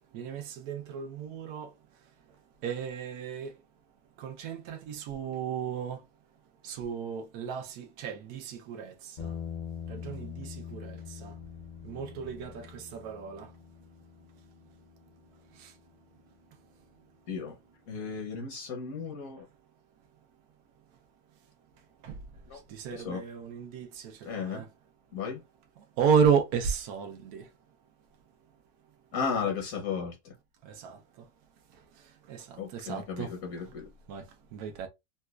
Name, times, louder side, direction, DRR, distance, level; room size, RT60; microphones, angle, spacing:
voice 1, 0.1-1.7 2.6-3.5 4.2-6.0 6.6-8.9 9.2-9.3 9.9-11.3 11.8-13.5 22.0-22.1 22.7-24.7 26.0-27.4 30.8-31.0 32.3-32.5 32.7-33.3 34.1-34.2 34.5-34.9, right 6 dB, 90° right, 1.1 m, -32 dB
sound 1, 9.2-17.5, left 8 dB, 50° left, 0.5 m, -44 dB
voice 2, 17.9-19.4 22.5-22.6 22.9-23.2 24.2-24.7 25.1-25.4 29.1-30.3 32.6-33.9, left 6 dB, 70° left, 1.2 m, -34 dB
4.0 x 2.2 x 2.3 m
omnidirectional pair, 1.6 m